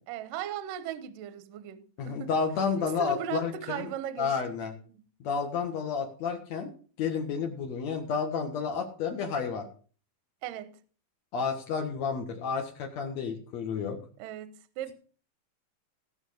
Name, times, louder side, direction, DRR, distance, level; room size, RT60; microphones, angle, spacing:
voice 1, 0.1-2.3 2.8-4.4 4.9-5.0 10.4-10.8 14.2-14.9, right 9 dB, 80° right, 11 dB, 2.0 m, -37 dB
voice 2, 2.0-3.9 4.2-4.7 5.2-6.7 7.0-9.6 11.3-14.0, left 6 dB, 70° left, 1 dB, 1.6 m, -31 dB
17.0 x 6.3 x 6.3 m, 0.40 s
omnidirectional pair, 5.6 m